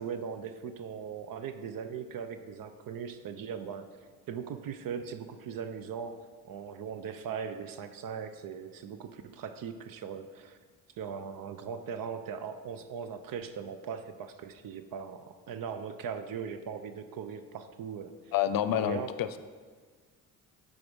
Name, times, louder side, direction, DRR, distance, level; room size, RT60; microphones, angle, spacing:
voice 1, 0.0-3.9 4.3-10.6 11.0-18.3 18.7-19.2, right 7 dB, 60° right, 10 dB, 0.7 m, -39 dB
voice 2, 18.3-19.4, left 11 dB, 65° left, 12 dB, 0.6 m, -28 dB
8.6 x 3.7 x 6.1 m, 1.5 s
cardioid pair, 75°, 38 cm